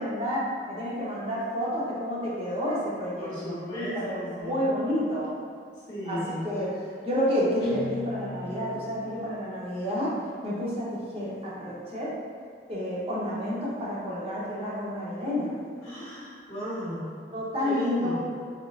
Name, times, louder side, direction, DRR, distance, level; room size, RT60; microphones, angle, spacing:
voice 1, 0.0-5.3 6.1-6.2 6.4-6.7 7.0-10.1 10.4-12.1 12.7-15.5 17.3-18.2, equal, 30° right, -7 dB, 0.8 m, -30 dB
voice 2, 3.2-4.7 5.9-6.5 15.8-17.1 17.6-18.2, equal, 20° left, -12 dB, 1.0 m, -35 dB
Guitar, 7.6-9.3, left 2 dB, 55° left, 0.9 m, -41 dB
3.7 x 3.2 x 2.3 m, 2.1 s
head